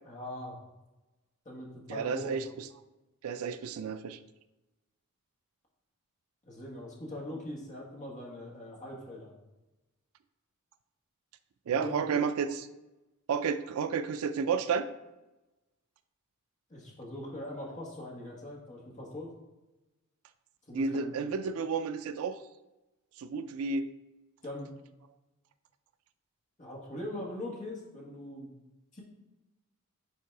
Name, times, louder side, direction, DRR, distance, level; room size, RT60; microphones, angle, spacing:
voice 1, 0.0-0.6 1.4-2.4 6.4-9.3 11.7-12.2 16.7-19.3 20.7-21.1 24.4-24.8 26.6-28.5 28.9-29.0, left 1 dB, 35° left, -2 dB, 1.4 m, -41 dB
voice 2, 1.9-2.4 3.2-4.2 11.7-12.7 13.3-14.9 20.7-22.4 23.2-23.9, right 5 dB, 80° right, 12 dB, 0.4 m, -31 dB
5.5 x 3.9 x 4.6 m, 1.0 s
head